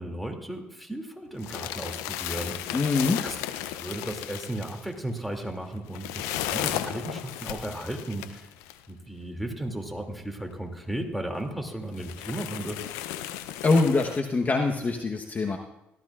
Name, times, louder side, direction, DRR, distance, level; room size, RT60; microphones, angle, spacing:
voice 1, 0.0-2.9 3.2-3.4 3.7-8.5 8.9-12.8, right 1 dB, ahead, 3 dB, 2.6 m, -35 dB
sound 1, 1.3-8.8 9.6-9.7 10.1-10.2 10.8-10.9 11.3-11.4 11.9-14.2, left 12 dB, 85° left, 0.5 m, -35 dB
voice 2, 2.7-3.2 13.6-15.6, left 3 dB, 35° left, 3 dB, 1.1 m, -24 dB
17.5 x 13.5 x 2.5 m, 0.91 s
supercardioid pair, 60°, 5 cm